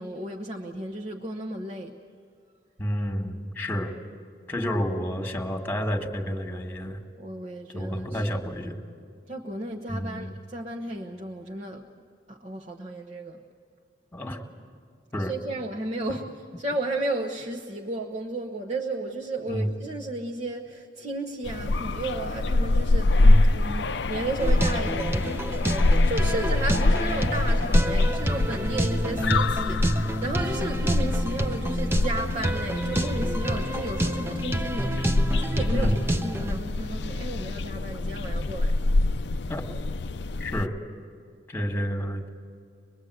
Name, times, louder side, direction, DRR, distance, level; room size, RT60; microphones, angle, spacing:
voice 1, 0.0-2.0 7.2-8.2 9.3-13.4 15.2-16.3 16.6-38.8, right 2 dB, 35° right, 1.0 m, -34 dB
voice 2, 2.8-3.9 4.5-7.0 7.7-8.8 9.9-10.3 14.1-14.4 15.1-15.3 19.5-19.7 23.2-23.5 29.2-29.4 35.7-36.0 39.5-39.6 40.4-40.7 41.5-42.3, equal, 10° left, 1.7 m, -29 dB
sound 1, 21.4-40.7, left 2 dB, 70° left, 0.5 m, -25 dB
sound 2, 24.4-36.6, right 1 dB, 15° right, 0.7 m, -29 dB
25.0 x 21.5 x 8.0 m
head